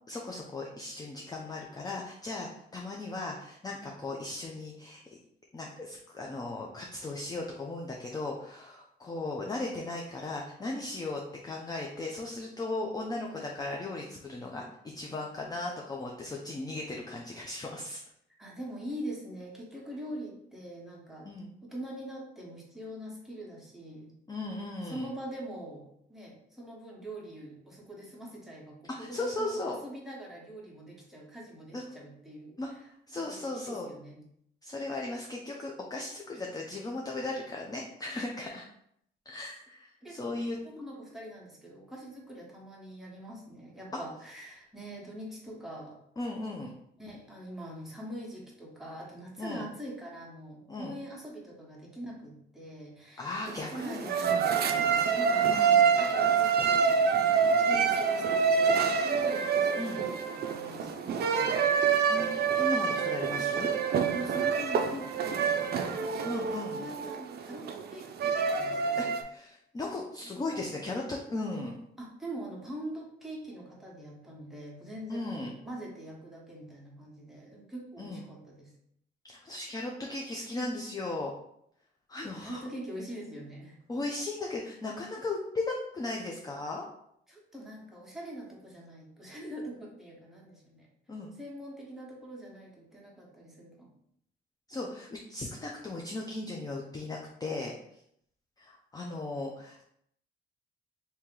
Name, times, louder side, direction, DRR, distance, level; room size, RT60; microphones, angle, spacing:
voice 1, 0.1-5.0 5.5-18.0 21.2-21.5 24.3-25.1 29.0-29.8 31.7-31.8 32.6-32.7 33.1-33.9 34.6-38.6 39.3-40.6 43.9-44.0 46.2-46.7 49.4-49.7 50.7-51.0 53.2-54.5 55.4-55.9 59.8-60.0 62.1-63.7 66.2-66.8 69.0-71.8 75.1-75.5 78.0-78.2 79.2-81.3 82.1-82.6 83.9-86.8 91.1-91.3 94.7-97.7 98.6-99.9, left 2 dB, 20° left, -1 dB, 0.5 m, -37 dB
voice 2, 18.4-21.3 21.6-24.1 24.8-32.8 33.1-34.2 40.0-40.4 40.6-46.0 47.0-57.3 57.6-61.6 64.1-69.1 70.2-70.8 72.0-78.7 82.4-83.8 87.3-90.9 91.4-93.9, right 1 dB, ahead, -4 dB, 1.1 m, -43 dB
sound 1, 53.5-69.2, right 6 dB, 55° right, 0.4 m, -27 dB
2.9 x 2.8 x 3.7 m, 0.72 s
cardioid pair, 90°, 20 cm